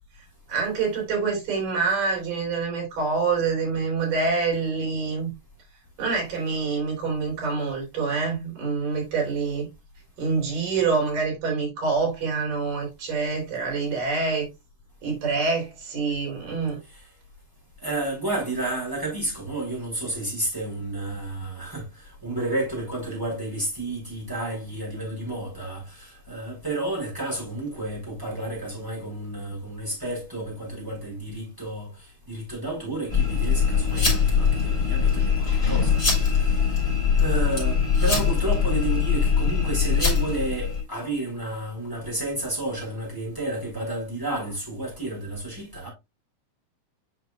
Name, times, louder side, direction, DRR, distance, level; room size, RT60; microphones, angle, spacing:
voice 1, 0.5-5.3 6.0-9.7 10.2-14.5 15.0-16.8, right 4 dB, 85° right, 5.1 m, -26 dB
voice 2, 17.8-31.9 32.3-36.6 37.2-45.9, right 2 dB, 5° right, 3.8 m, -31 dB
sound 1, 33.1-40.8, left 6 dB, 15° left, 4.0 m, -22 dB
8.1 x 5.8 x 2.4 m
omnidirectional pair, 3.7 m